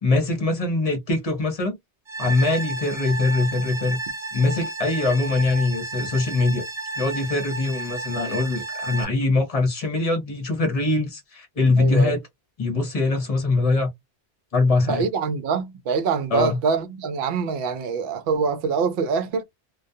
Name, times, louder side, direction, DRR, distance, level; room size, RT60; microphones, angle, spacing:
voice 1, 0.0-1.8 2.2-4.0 4.3-6.6 7.0-12.2 12.6-13.9 14.5-15.0 16.3-16.6, left 3 dB, 35° left, 0.7 m, -22 dB
sound 1, 2.1-9.0, right 2 dB, 45° right, 0.4 m, -32 dB
voice 2, 11.8-12.1 14.8-19.4, right 5 dB, 60° right, 0.7 m, -25 dB
2.2 x 2.2 x 2.6 m
omnidirectional pair, 1.2 m